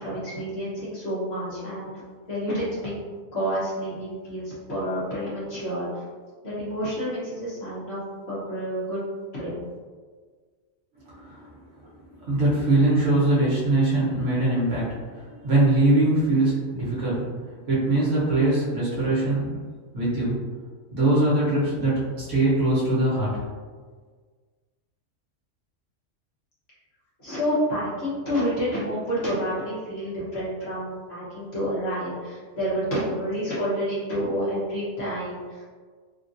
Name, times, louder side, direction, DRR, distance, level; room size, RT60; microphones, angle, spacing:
voice 1, 0.0-1.9 2.3-2.9 3.3-6.1 6.4-8.0 8.3-9.0 9.3-9.5 27.2-35.7, equal, 55° left, -10 dB, 1.4 m, -29 dB
voice 2, 11.0-11.5 12.2-17.3 17.7-19.6 19.9-20.4 20.9-23.3, right 2 dB, 65° right, -8 dB, 1.4 m, -22 dB
3.5 x 2.5 x 2.6 m, 1.6 s
omnidirectional pair, 1.4 m